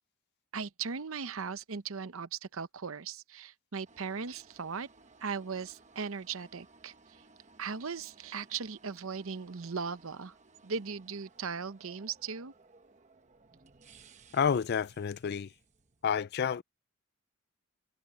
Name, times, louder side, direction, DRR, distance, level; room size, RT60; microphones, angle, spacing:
voice 1, 0.5-4.9 5.2-7.2 7.6-10.3 10.6-12.5, right 5 dB, 65° right, 0.7 m, -38 dB
sound 1, 3.8-16.1, right 4 dB, 30° right, 1.0 m, -60 dB
voice 2, 14.3-15.5 16.0-16.6, left 7 dB, 45° left, 0.3 m, -29 dB
head